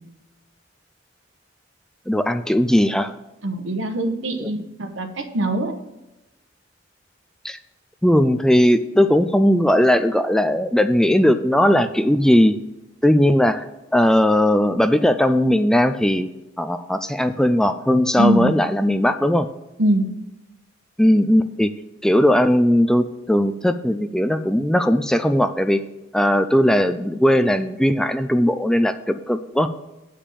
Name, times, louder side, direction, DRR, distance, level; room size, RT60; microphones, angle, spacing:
voice 1, 2.1-3.1 4.4-4.5 7.4-7.6 8.0-12.6 13.0-13.7 13.9-16.3 16.6-19.5 21.0-21.7 22.0-25.8 26.1-29.7, left 1 dB, 5° left, 9 dB, 0.3 m, -18 dB
voice 2, 3.4-5.8 18.2-18.5 19.8-20.1, right 1 dB, 80° right, 7 dB, 1.1 m, -22 dB
8.6 x 5.0 x 7.3 m, 0.97 s
head